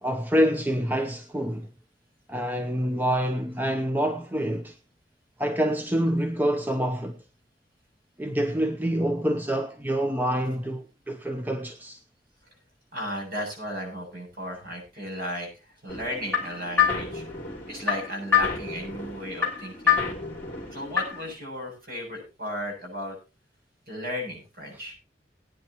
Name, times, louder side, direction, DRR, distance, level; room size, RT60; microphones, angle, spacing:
voice 1, 0.0-1.7 2.3-4.8 5.4-7.2 8.2-12.0, equal, 10° right, 0.7 m, -26 dB
voice 2, 12.9-17.2 17.7-20.1 20.7-23.2 23.9-24.9, equal, 50° right, 8.0 m, -35 dB
sound 1, 15.9-21.3, left 7 dB, 10° left, 3.1 m, -27 dB
20.5 x 9.6 x 3.0 m
head